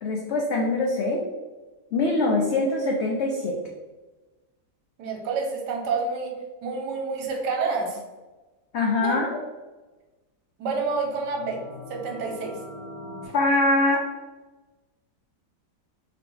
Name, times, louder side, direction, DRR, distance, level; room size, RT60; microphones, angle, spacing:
voice 1, 0.0-1.2 1.9-3.6 8.7-9.3 13.3-14.0, left 2 dB, 85° left, 0 dB, 0.6 m, -23 dB
voice 2, 5.0-6.3 6.6-8.0 9.0-9.2 10.6-11.6 11.9-12.5, right 4 dB, 80° right, 1 dB, 1.4 m, -28 dB
sound 1, 10.7-13.3, left 1 dB, 35° left, 0.8 m, -42 dB
3.7 x 2.8 x 3.7 m, 1.2 s
omnidirectional pair, 1.8 m